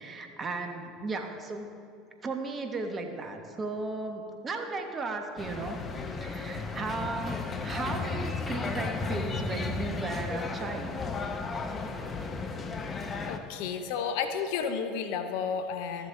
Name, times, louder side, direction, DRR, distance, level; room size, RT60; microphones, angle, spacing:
voice 1, 0.0-1.7 2.2-5.8 6.2-11.0, right 3 dB, 30° right, 4 dB, 1.3 m, -35 dB
sound 1, 5.4-13.4, left 4 dB, 30° left, 0.9 m, -34 dB
voice 2, 13.3-16.1, left 6 dB, 65° left, 8 dB, 0.7 m, -32 dB
14.0 x 7.4 x 3.9 m, 2.6 s
hypercardioid pair, 70°, 0 cm